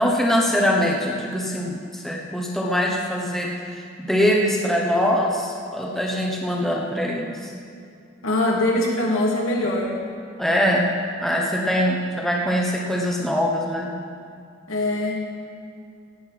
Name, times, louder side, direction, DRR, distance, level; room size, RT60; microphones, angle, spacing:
voice 1, 0.0-7.5 10.4-10.9 11.2-13.9, equal, ahead, -1 dB, 1.0 m, -23 dB
voice 2, 8.2-10.0 14.7-15.2, left 1 dB, 70° left, -2 dB, 2.6 m, -22 dB
17.0 x 8.0 x 6.0 m, 2.4 s
head